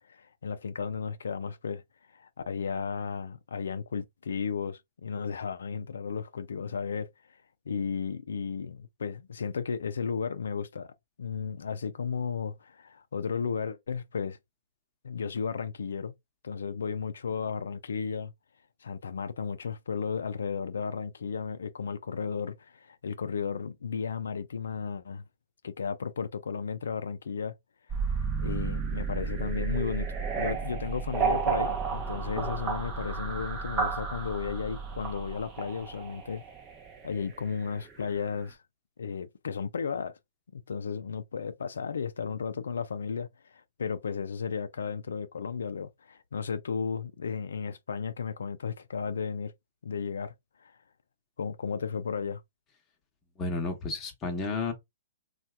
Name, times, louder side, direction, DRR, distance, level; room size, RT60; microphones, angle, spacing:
voice 1, 0.0-1.8 2.1-7.4 7.7-10.9 11.2-14.4 15.0-16.1 16.4-18.3 18.8-25.2 25.6-27.5 28.1-30.1 30.3-36.4 37.0-38.6 39.0-40.2 40.5-49.5 49.8-50.3 50.6-50.8 51.4-52.4, left 6 dB, 80° left, 0.4 m, -34 dB
sound 1, 27.9-37.9, right 5 dB, 20° right, 0.6 m, -32 dB
voice 2, 53.4-54.7, left 3 dB, 15° left, 0.9 m, -32 dB
2.8 x 2.3 x 3.3 m
hypercardioid pair, 155°, 0 cm